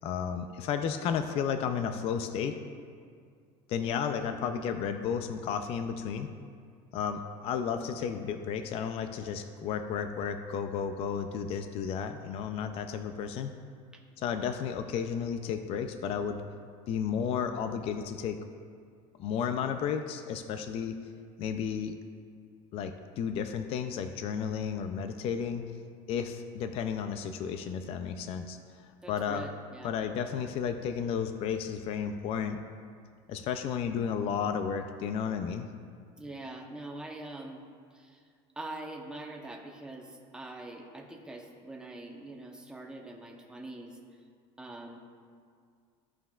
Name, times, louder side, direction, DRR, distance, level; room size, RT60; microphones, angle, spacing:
voice 1, 0.0-2.6 3.7-6.3 6.9-13.5 14.2-16.4 16.9-18.4 19.2-21.0 21.4-21.9 22.7-25.6 26.1-29.5 29.8-32.6 33.3-35.7, left 7 dB, 45° left, 8 dB, 0.4 m, -33 dB
voice 2, 29.0-29.9 36.2-37.6 37.9-38.2 38.6-44.0 44.6-45.0, right 2 dB, 5° right, 0 dB, 0.9 m, -43 dB
15.0 x 5.6 x 2.4 m, 2.1 s
cardioid pair, 145°, 14 cm